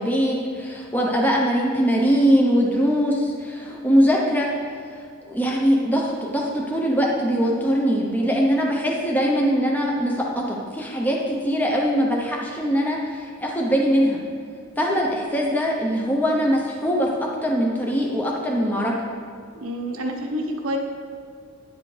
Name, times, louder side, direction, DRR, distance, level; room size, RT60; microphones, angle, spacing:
voice 1, 0.0-4.5 5.3-14.2 14.8-18.9, equal, 10° left, -2 dB, 0.7 m, -22 dB
voice 2, 19.6-20.8, equal, 80° right, 2 dB, 1.0 m, -28 dB
10.0 x 7.5 x 3.3 m, 2.3 s
head